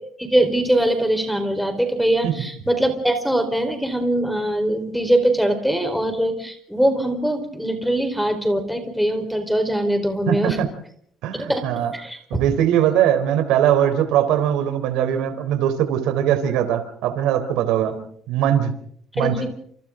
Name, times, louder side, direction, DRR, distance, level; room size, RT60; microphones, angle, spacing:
voice 1, 0.2-10.6 11.4-11.6 11.9-12.4 17.9-18.0 19.2-19.4, right 1 dB, ahead, 5 dB, 4.3 m, -22 dB
voice 2, 11.2-11.9 12.3-17.9 18.3-18.7 19.2-19.4, right 10 dB, 80° right, 8 dB, 3.7 m, -20 dB
30.0 x 28.0 x 3.9 m, 0.64 s
cardioid pair, 135°, 0 cm